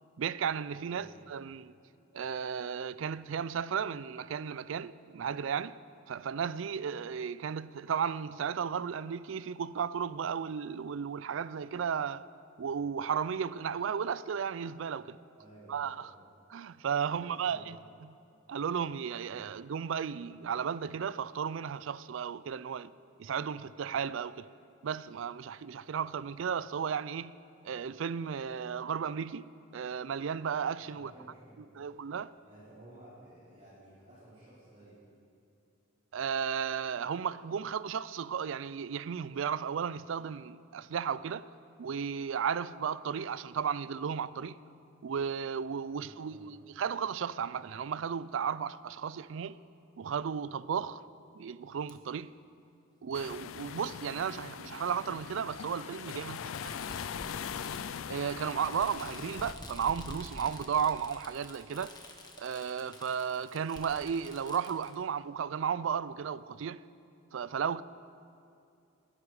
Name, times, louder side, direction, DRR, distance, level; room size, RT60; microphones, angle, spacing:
voice 1, 0.2-1.7 2.1-5.8 6.1-12.2 12.6-15.2 15.7-16.1 16.5-18.1 18.5-22.9 23.2-24.5 24.8-27.3 27.6-31.1 31.8-32.3 36.1-41.5 41.8-44.6 45.0-49.6 50.0-51.0 51.3-52.3 53.0-56.7 58.1-61.9 62.4-66.8 67.3-67.8, right 7 dB, 70° right, 0.4 m, -34 dB
voice 2, 0.8-1.1 15.3-16.1 17.1-17.6 30.8-32.0 32.4-35.0 45.9-46.6 56.0-57.3, right 1 dB, 30° right, 3.9 m, -55 dB
Fireworks, 51.9-52.0 53.1-53.2 54.5-54.6 56.2-64.9, left 1 dB, 20° left, 1.3 m, -48 dB
sound 1, 53.1-59.5, left 8 dB, 80° left, 0.4 m, -41 dB
20.5 x 11.0 x 4.9 m
head